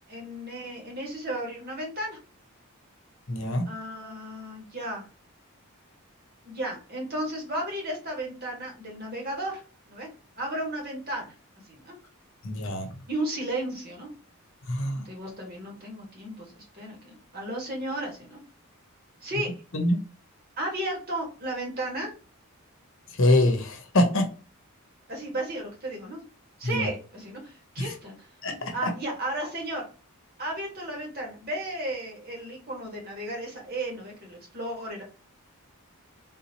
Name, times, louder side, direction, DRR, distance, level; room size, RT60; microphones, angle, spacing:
voice 1, 0.1-2.2 3.7-5.0 6.4-10.1 10.4-11.3 11.7-12.0 13.1-14.1 15.0-18.4 19.2-19.5 20.6-22.1 25.1-26.2 26.6-28.3 28.7-29.8 30.4-35.0, right 1 dB, 45° right, -1 dB, 1.5 m, -34 dB
voice 2, 3.3-3.7 12.4-12.9 14.7-15.0 19.7-20.0 23.2-24.3 26.6-26.9 27.8-27.9 28.4-28.9, left 1 dB, 60° left, 4 dB, 0.8 m, -24 dB
3.8 x 2.7 x 2.9 m, 0.35 s
head